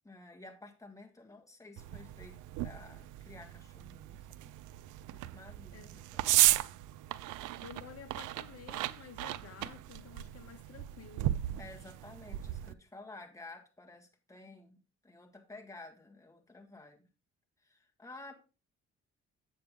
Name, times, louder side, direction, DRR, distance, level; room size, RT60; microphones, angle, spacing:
voice 1, 0.0-4.5 5.1-6.6 11.6-17.1 17.6-18.3, left 2 dB, 10° left, 1.7 m, -52 dB
sound 1, 1.8-12.7, right 15 dB, 85° right, 0.5 m, -35 dB
voice 2, 7.6-11.3, left 8 dB, 50° left, 1.0 m, -52 dB
8.0 x 7.6 x 3.7 m
cardioid pair, 90°, 30 cm